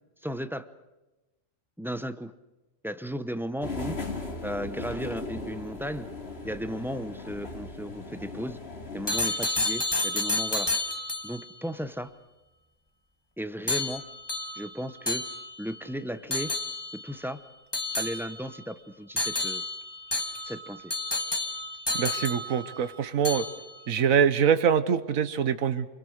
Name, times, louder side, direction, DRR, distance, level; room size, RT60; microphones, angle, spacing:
voice 1, 0.2-0.7 1.8-2.3 2.8-4.0 4.4-6.1 6.4-8.6 8.9-10.7 11.2-12.1 13.4-14.0 14.6-15.3 15.6-16.5 16.9-17.4 18.0-19.6 20.4-20.9, equal, ahead, 11 dB, 0.6 m, -35 dB
sound 1, 3.6-9.2, left 3 dB, 50° left, 2.7 m, -38 dB
sound 2, 9.1-11.5 13.7-15.8 16.3-17.1 17.7-18.6 19.2-22.9 23.2-23.8, left 2 dB, 20° left, 1.6 m, -31 dB
voice 2, 21.9-23.4 23.9-25.9, right 7 dB, 85° right, 12 dB, 1.5 m, -24 dB
28.5 x 22.0 x 6.5 m, 1.1 s
omnidirectional pair, 1.4 m